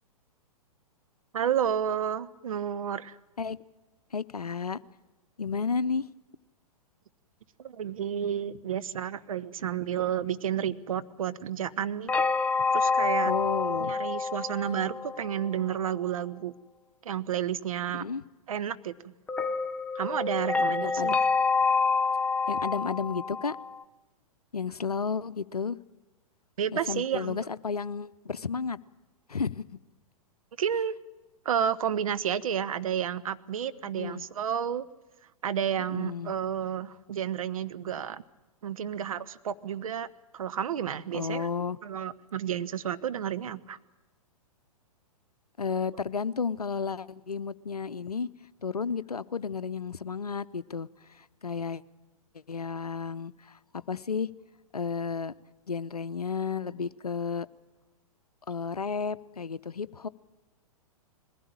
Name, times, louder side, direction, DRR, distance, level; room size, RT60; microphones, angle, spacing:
voice 1, 1.3-3.2 7.6-12.1 12.7-13.3 13.8-16.5 17.0-18.1 18.5-19.1 19.9-21.2 26.6-27.4 30.6-30.9 31.4-34.9 35.4-38.2 38.6-40.1 40.3-41.5 41.8-43.8, right 9 dB, 65° right, 12 dB, 0.9 m, -31 dB
voice 2, 4.1-4.8 5.4-6.0 13.2-13.9 18.0-18.2 20.7-21.2 22.5-23.6 24.5-25.8 26.7-28.8 29.3-29.7 34.0-34.2 35.9-36.3 41.1-41.8 45.6-48.3 48.6-50.9 51.1-51.8 52.5-54.3 54.7-55.3 55.7-57.5 58.5-60.1, left 5 dB, 90° left, 15 dB, 0.6 m, -32 dB
sound 1, 12.1-15.7 19.3-23.8, left 4 dB, 5° left, 0.6 m, -27 dB
21.0 x 15.5 x 8.8 m, 1.1 s
figure-of-eight pair, 110°, 19 cm